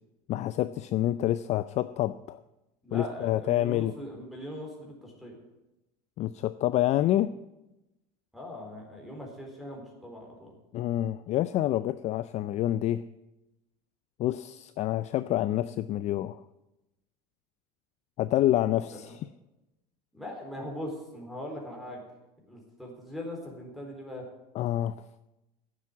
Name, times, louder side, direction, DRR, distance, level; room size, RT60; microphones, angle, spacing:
voice 1, 0.3-2.4 2.9-3.9 6.2-7.4 10.7-13.0 14.2-16.4 18.2-19.3 24.5-25.0, left 13 dB, 35° left, 15 dB, 0.4 m, -27 dB
voice 2, 2.8-5.4 8.3-10.5 18.9-19.0 20.1-22.0 22.5-24.3, left 1 dB, ahead, -1 dB, 4.0 m, -40 dB
9.7 x 7.7 x 9.4 m, 0.97 s
supercardioid pair, 110°, 19 cm